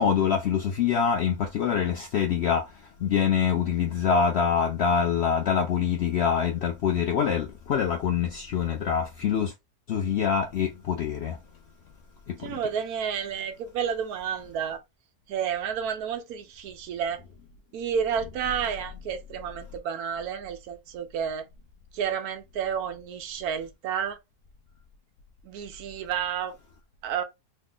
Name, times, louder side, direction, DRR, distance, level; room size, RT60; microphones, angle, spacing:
voice 1, 0.0-9.5 9.9-11.4 12.3-12.6, left 7 dB, 85° left, 0.5 m, -25 dB
voice 2, 12.4-14.8 15.3-17.2 17.7-21.4 21.9-24.2 25.4-26.6 27.0-27.2, right 8 dB, 70° right, 1.1 m, -31 dB
3.2 x 2.0 x 3.6 m
omnidirectional pair, 1.7 m